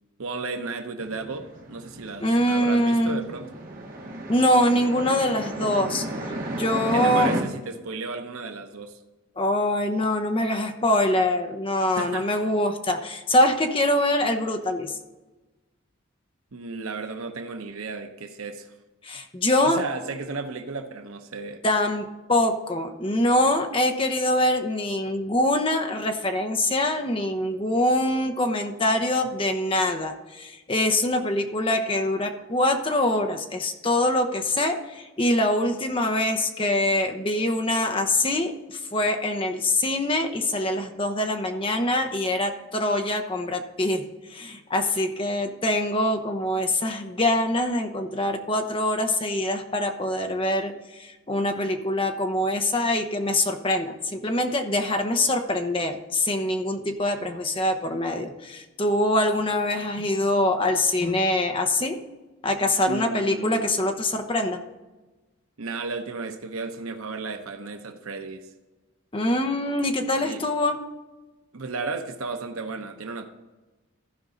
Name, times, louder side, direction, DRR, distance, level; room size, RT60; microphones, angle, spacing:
voice 1, 0.2-3.5 6.9-9.0 11.9-12.5 16.5-18.7 19.6-21.6 62.9-63.8 65.6-68.5 70.2-70.5 71.5-73.3, right 3 dB, 80° right, 7 dB, 0.8 m, -34 dB
sound 1, 1.0-7.4, right 1 dB, 40° right, 1.5 m, -33 dB
voice 2, 2.2-3.3 4.3-7.3 9.4-15.0 19.0-19.8 21.6-44.0 44.3-61.9 62.4-64.6 69.1-70.8, left 1 dB, 25° left, 5 dB, 0.8 m, -24 dB
15.0 x 5.2 x 3.9 m, 1.2 s
head